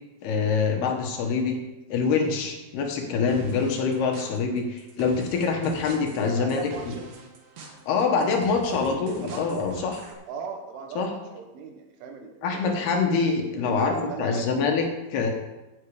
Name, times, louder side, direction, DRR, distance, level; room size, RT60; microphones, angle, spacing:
voice 1, 0.2-1.6 1.9-6.9 7.9-10.0 11.0-11.1 12.4-15.3, left 5 dB, 70° left, 3 dB, 3.0 m, -25 dB
sound 1, 3.3-10.1, right 3 dB, 65° right, 1.6 m, -45 dB
voice 2, 6.1-7.1 8.2-8.3 8.6-9.9 10.3-12.8 13.5-14.5, right 5 dB, 90° right, 4 dB, 3.9 m, -38 dB
15.5 x 8.2 x 4.9 m, 1.0 s
omnidirectional pair, 5.3 m